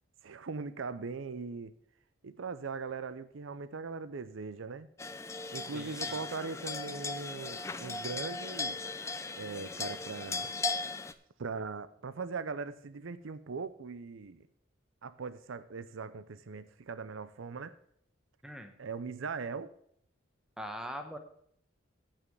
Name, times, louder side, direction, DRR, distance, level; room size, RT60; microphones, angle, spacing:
voice 1, 0.2-1.7 2.2-4.9 5.5-8.8 9.4-10.5 11.4-14.5 15.0-17.8 18.8-19.7, right 4 dB, 80° right, 14 dB, 0.6 m, -40 dB
sound 1, 5.0-11.1, left 3 dB, 15° left, 0.4 m, -37 dB
voice 2, 5.7-6.2 18.4-18.7 20.6-21.2, equal, 5° right, 6 dB, 0.9 m, -42 dB
8.4 x 6.3 x 7.8 m, 0.69 s
head